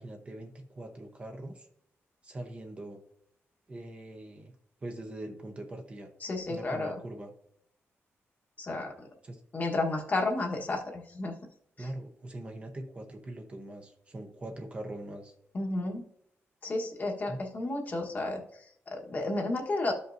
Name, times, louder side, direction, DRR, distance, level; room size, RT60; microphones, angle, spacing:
voice 1, 0.0-1.7 2.2-3.0 3.7-4.5 4.8-6.1 6.5-7.3 9.2-9.4 11.8-15.3 17.3-17.4, right 1 dB, 25° right, 4 dB, 0.8 m, -42 dB
voice 2, 6.2-7.0 8.6-9.1 9.5-11.3 11.8-11.9 15.5-16.0 16.6-19.9, left 2 dB, 35° left, 1 dB, 1.2 m, -32 dB
13.5 x 5.3 x 2.6 m, 0.70 s
wide cardioid pair, 175°, 5 cm